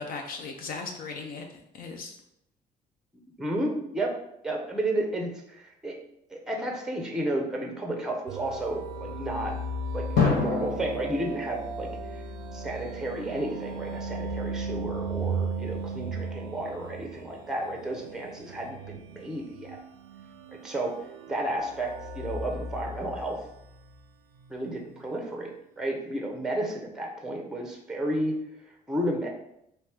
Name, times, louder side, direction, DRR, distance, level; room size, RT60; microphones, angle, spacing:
voice 1, 0.0-2.2, left 4 dB, 60° left, 3 dB, 0.6 m, -37 dB
voice 2, 3.4-4.1 4.4-6.0 6.3-9.5 9.9-12.2 12.5-19.8 20.5-20.9 21.3-23.4 24.5-28.3 28.9-29.3, right 1 dB, 5° right, 1 dB, 0.6 m, -32 dB
sound 1, 8.3-23.9 24.4-24.5, right 3 dB, 85° right, 0.4 m, -36 dB
Drum, 10.2-13.1, left 5 dB, 80° left, 1.2 m, -29 dB
3.1 x 3.0 x 3.3 m, 0.78 s
cardioid pair, 110°, 17 cm